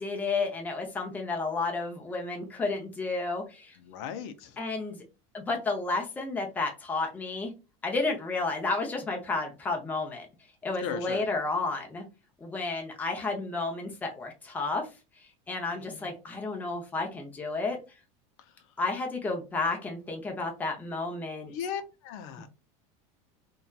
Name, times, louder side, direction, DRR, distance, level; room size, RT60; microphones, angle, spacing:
voice 1, 0.0-3.8 4.6-5.0 5.3-7.5 7.8-10.3 10.6-12.0 12.4-14.9 15.5-17.8 18.8-21.5, left 3 dB, 10° left, 0.5 m, -31 dB
voice 2, 3.8-4.6 10.8-11.2 15.7-16.1 21.5-22.5, left 8 dB, 65° left, 0.4 m, -37 dB
2.6 x 2.2 x 2.2 m
cardioid pair, 160°, 17 cm